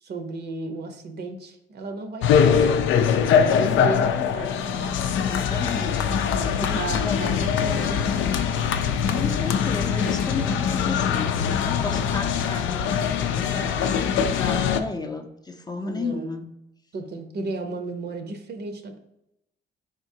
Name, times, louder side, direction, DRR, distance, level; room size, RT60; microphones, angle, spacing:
voice 1, 0.0-2.8 3.2-5.0 6.3-8.5 15.8-16.4 16.9-19.0, right 3 dB, 55° right, 7 dB, 0.7 m, -34 dB
sound 1, 2.2-14.8, left 7 dB, 75° left, 0.4 m, -22 dB
voice 2, 5.2-6.2 6.5-7.3 9.1-13.1 13.3-16.4, left 3 dB, 20° left, 3 dB, 0.5 m, -33 dB
4.8 x 3.6 x 2.7 m, 0.86 s
cardioid pair, 90°, 20 cm